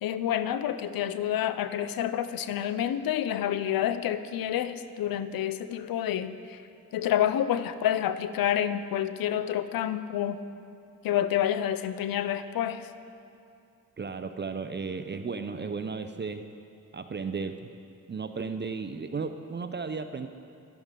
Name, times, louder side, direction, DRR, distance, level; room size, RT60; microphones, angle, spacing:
voice 1, 0.0-6.6 6.9-10.4 11.0-12.9, left 10 dB, 85° left, 12 dB, 0.5 m, -28 dB
voice 2, 14.0-16.5 16.9-17.7 18.1-20.3, right 5 dB, 30° right, 9 dB, 0.5 m, -34 dB
11.5 x 10.5 x 3.7 m, 2.5 s
cardioid pair, 60°, 34 cm